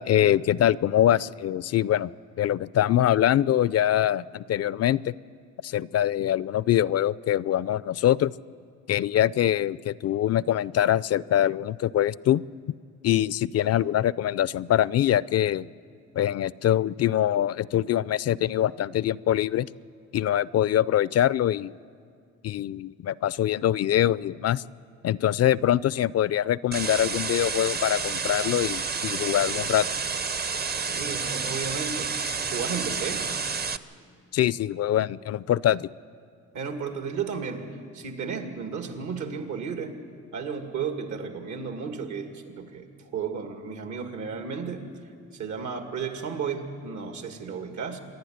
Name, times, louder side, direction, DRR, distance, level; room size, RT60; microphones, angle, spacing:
voice 1, 0.0-2.1 2.4-5.1 5.6-8.3 8.9-12.5 13.0-15.7 16.1-19.7 20.1-21.7 22.4-24.6 25.0-29.9 34.3-35.9, left 11 dB, 55° left, 20 dB, 0.5 m, -24 dB
sound 1, 26.7-33.8, right 5 dB, 30° right, 0.8 m, -30 dB
voice 2, 30.8-32.1 32.5-33.3 36.5-37.7 37.9-40.0 40.3-44.9 45.3-48.0, right 6 dB, 70° right, 5 dB, 2.4 m, -33 dB
26.0 x 11.5 x 9.4 m, 2.3 s
cardioid pair, 90°, 30 cm